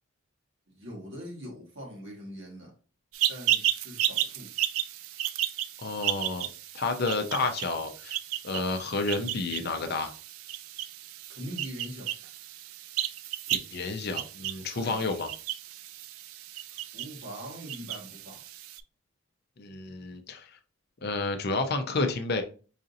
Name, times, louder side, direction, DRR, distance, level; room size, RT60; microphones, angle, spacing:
voice 1, 0.7-2.7 3.3-4.5 11.3-12.1 14.7-15.0 16.7-18.4, equal, 55° right, 1.6 m, -42 dB
sound 1, 3.1-18.8, right 12 dB, 75° right, 0.3 m, -34 dB
voice 2, 5.8-6.5 6.7-8.2 8.4-10.1 13.5-15.3 19.6-20.5 21.0-22.4, left 3 dB, 45° left, 0.5 m, -30 dB
4.9 x 2.6 x 2.6 m
head